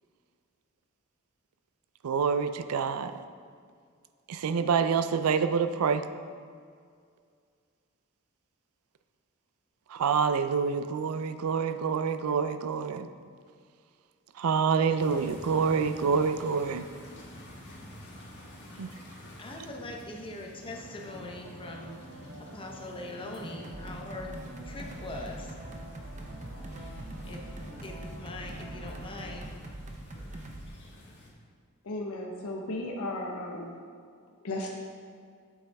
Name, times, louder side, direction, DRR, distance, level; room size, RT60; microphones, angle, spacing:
voice 1, 2.0-3.2 4.3-6.0 9.9-13.1 14.4-16.9 18.8-18.9, right 6 dB, 85° right, 11 dB, 0.4 m, -27 dB
sound 1, 15.0-31.3, left 1 dB, 55° left, 1.5 m, -49 dB
voice 2, 19.4-22.0 22.5-24.3 24.6-25.5 27.2-29.5, left 2 dB, 25° left, 0 dB, 0.9 m, -42 dB
sound 2, 20.5-29.5, right 1 dB, 60° right, 1.6 m, -49 dB
sound 3, 23.4-30.7, right 1 dB, 35° right, 0.7 m, -43 dB
voice 3, 31.8-33.8 34.4-34.7, left 1 dB, 80° left, -1 dB, 0.9 m, -35 dB
8.4 x 7.3 x 3.4 m, 2.1 s
head